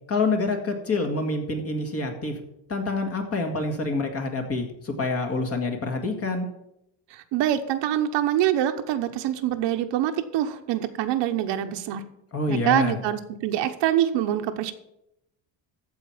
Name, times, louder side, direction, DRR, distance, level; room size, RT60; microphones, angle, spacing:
voice 1, 0.1-2.4 2.7-6.5 12.3-13.0, left 3 dB, 30° left, 3 dB, 2.0 m, -27 dB
voice 2, 7.1-12.0 12.5-14.7, right 11 dB, 75° right, 7 dB, 1.0 m, -25 dB
14.0 x 4.7 x 7.2 m, 0.80 s
cardioid pair, 145°, 44 cm